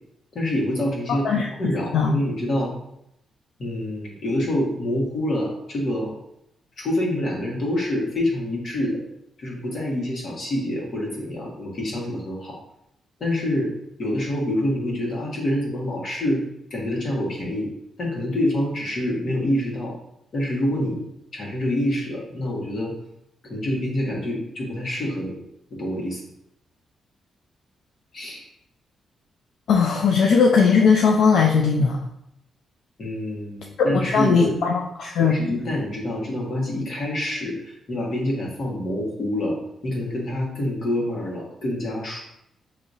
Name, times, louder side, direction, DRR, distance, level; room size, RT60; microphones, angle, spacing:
voice 1, 0.3-2.7 3.6-6.1 6.8-9.0 9.4-12.6 13.2-13.7 14.0-16.4 16.7-17.7 18.0-19.9 20.3-21.0 21.3-22.9 23.5-25.4 25.7-26.2 28.1-28.4 33.0-34.6 35.2-39.6 39.8-42.3, left 1 dB, 50° left, -2 dB, 1.4 m, -26 dB
voice 2, 1.1-1.5 1.9-2.1 29.7-32.0 34.0-35.4, left 5 dB, 75° left, 1 dB, 0.4 m, -18 dB
6.3 x 2.8 x 2.7 m, 0.78 s
cardioid pair, 115°, 0 cm